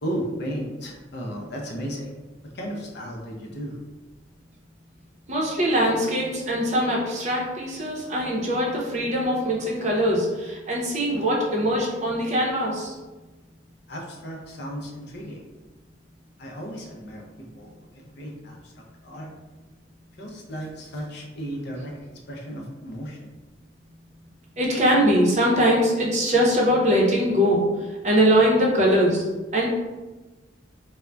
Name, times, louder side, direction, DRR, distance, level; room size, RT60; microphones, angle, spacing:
voice 1, 0.0-2.1 2.4-3.8 13.9-15.4 16.4-19.3 20.2-23.3, equal, 60° left, 0 dB, 0.5 m, -35 dB
voice 2, 5.3-12.9 24.6-27.6 28.0-29.2 29.5-29.7, equal, 40° right, -3 dB, 0.6 m, -22 dB
3.6 x 2.1 x 2.2 m, 1.2 s
head